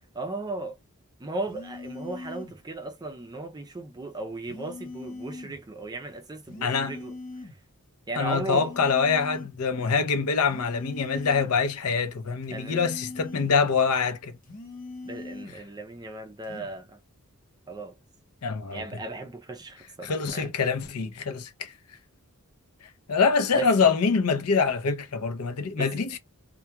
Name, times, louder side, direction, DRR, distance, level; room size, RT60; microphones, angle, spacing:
voice 1, 0.1-0.8 1.2-7.1 8.1-8.7 12.5-12.8 15.0-17.0 17.7-17.9 18.7-20.5 23.5-23.7 25.8-25.9, right 2 dB, 20° right, 0.4 m, -36 dB
sound 1, 1.4-2.6 4.5-5.6 6.5-7.6 8.4-9.6 10.4-11.6 12.4-13.6 14.4-15.6 16.4-16.8, left 3 dB, 40° left, 0.9 m, -41 dB
voice 2, 6.6-6.9 8.2-14.3 18.4-18.8 20.0-21.7 23.1-26.2, left 5 dB, 75° left, 0.6 m, -25 dB
2.3 x 2.2 x 2.8 m
head